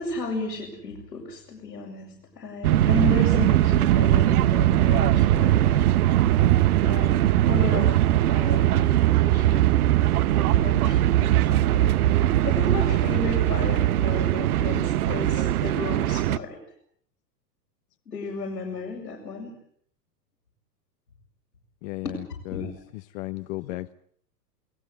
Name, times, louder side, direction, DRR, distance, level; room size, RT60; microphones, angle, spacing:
voice 1, 0.0-5.8 6.8-8.0 8.3-9.6 10.4-12.0 12.4-16.6 18.1-19.5 22.0-22.2 22.5-22.7, left 3 dB, 90° left, -3 dB, 6.7 m, -33 dB
sound 1, 2.6-16.4, right 13 dB, 60° right, 1.1 m, -20 dB
voice 2, 21.8-23.9, left 20 dB, 45° left, 10 dB, 1.0 m, -35 dB
28.5 x 18.5 x 8.0 m, 0.64 s
hypercardioid pair, 105°, 49 cm